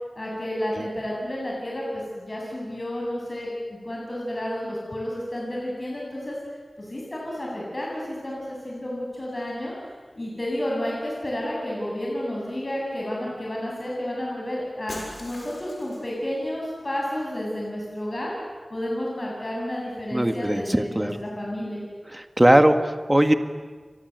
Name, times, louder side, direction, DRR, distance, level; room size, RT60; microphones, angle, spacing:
voice 1, 0.1-6.4 6.8-9.7 10.1-18.3 18.7-21.8, left 1 dB, 40° left, -3 dB, 7.9 m, -31 dB
Shatter, 14.9-16.2, left 2 dB, 75° left, 6.7 m, -40 dB
voice 2, 20.1-21.2 22.1-23.3, right 1 dB, 20° right, 7 dB, 1.8 m, -20 dB
29.5 x 23.5 x 8.1 m, 1.5 s
wide cardioid pair, 55°, 0 cm